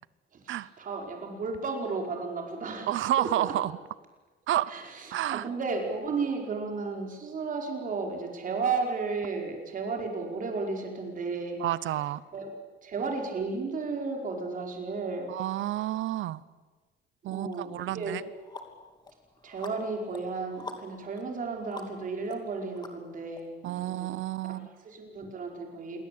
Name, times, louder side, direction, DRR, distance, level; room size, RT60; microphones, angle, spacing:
voice 1, 0.3-3.3 4.7-11.6 12.3-12.5 12.8-15.3 17.3-18.2 19.4-24.1 24.5-24.6 24.8-26.0, right 4 dB, 45° right, 2 dB, 5.1 m, -33 dB
voice 2, 2.9-3.7 4.5-4.7 5.1-5.5 11.6-12.2 15.3-16.4 17.2-18.2 23.6-24.7, right 13 dB, 80° right, 18 dB, 0.8 m, -30 dB
sound 1, 17.5-17.6 18.0-23.4, left 3 dB, 20° left, 2.8 m, -46 dB
27.5 x 22.5 x 8.7 m, 1.3 s
cardioid pair, 180°, 20 cm